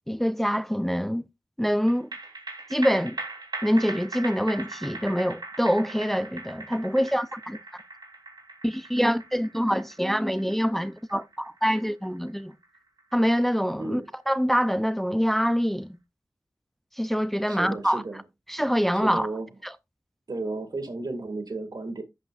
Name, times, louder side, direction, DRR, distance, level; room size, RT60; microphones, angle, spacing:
voice 1, 0.1-1.2 1.6-2.1 2.7-3.2 3.6-7.8 8.6-12.5 13.1-14.0 14.3-16.0 17.0-18.0 18.5-19.3 19.6-19.7, equal, 5° left, 0.5 m, -25 dB
sound 1, 1.9-14.5 14.9-15.0, right 3 dB, 90° right, 3.5 m, -40 dB
voice 2, 17.5-18.2 19.0-19.5 20.3-22.0, right 2 dB, 75° right, 2.1 m, -33 dB
11.5 x 8.0 x 2.5 m
wide cardioid pair, 85°, 7 cm